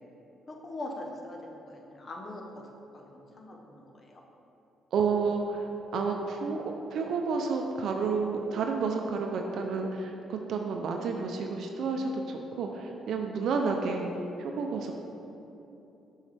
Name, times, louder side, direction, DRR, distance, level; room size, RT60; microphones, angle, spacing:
voice 1, 0.5-4.2, left 1 dB, 40° left, 1 dB, 0.9 m, -42 dB
voice 2, 4.9-14.1 14.4-14.9, right 4 dB, 70° right, 3 dB, 0.5 m, -30 dB
7.1 x 5.5 x 3.4 m, 3.0 s
cardioid pair, 90°, 0 cm